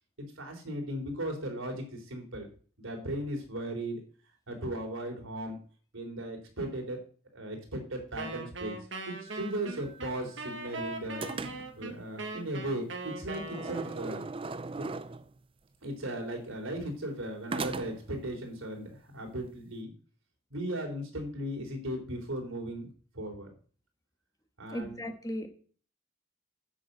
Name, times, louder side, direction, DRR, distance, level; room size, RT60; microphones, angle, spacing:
voice 1, 0.4-2.5 2.8-4.0 4.5-5.6 5.9-7.0 7.3-8.7 9.1-11.2 11.8-14.2 14.8-14.9 15.8-19.9 20.5-22.9 23.1-23.5 24.6-25.0, right 1 dB, 90° right, 3 dB, 3.7 m, -37 dB
Wind instrument woodwind instrument, 8.2-14.2, right 3 dB, 60° right, 1.8 m, -40 dB
sound 1, 9.3-10.7 11.2-11.9 13.3-15.4 17.5-18.2, right 3 dB, 25° right, 0.5 m, -39 dB
voice 2, 24.7-25.5, left 1 dB, 15° left, 6 dB, 1.4 m, -36 dB
10.0 x 6.3 x 7.9 m, 0.43 s
head